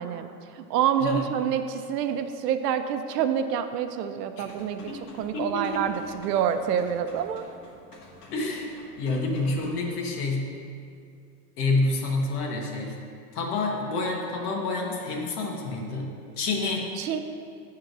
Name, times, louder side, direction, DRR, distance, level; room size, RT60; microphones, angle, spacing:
voice 1, 0.0-4.9 5.2-7.4 17.0-17.2, right 8 dB, 85° right, 8 dB, 0.6 m, -27 dB
sound 1, 4.4-9.8, left 2 dB, 85° left, 1.6 m, -50 dB
voice 2, 5.3-5.8 8.3-10.5 11.6-13.0 13.3-16.9, left 3 dB, 70° left, -1 dB, 1.3 m, -28 dB
8.0 x 3.7 x 6.0 m, 2.4 s
supercardioid pair, 165°, 47 cm